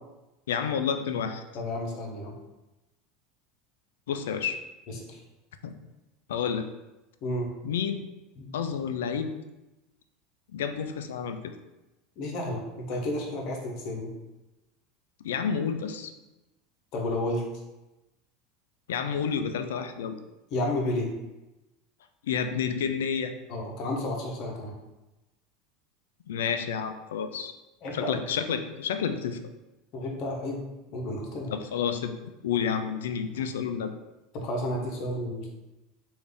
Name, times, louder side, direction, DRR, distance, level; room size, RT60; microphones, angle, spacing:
voice 1, 0.5-1.4 4.1-4.6 5.6-5.8 6.3-6.7 7.6-8.1 8.5-9.3 10.5-11.5 15.2-16.1 18.9-20.2 22.2-23.3 26.3-27.5 27.9-29.4 31.5-32.2 32.4-33.9, left 7 dB, 85° left, 8 dB, 0.3 m, -30 dB
voice 2, 1.5-2.3 4.9-5.0 7.2-7.5 8.4-8.5 12.2-14.1 16.9-17.5 20.5-21.1 23.5-24.7 27.8-28.1 29.9-30.6 30.9-31.5 34.3-35.5, left 1 dB, 55° left, 0 dB, 0.9 m, -31 dB
3.3 x 2.6 x 3.5 m, 1.0 s
hypercardioid pair, 100°, 0 cm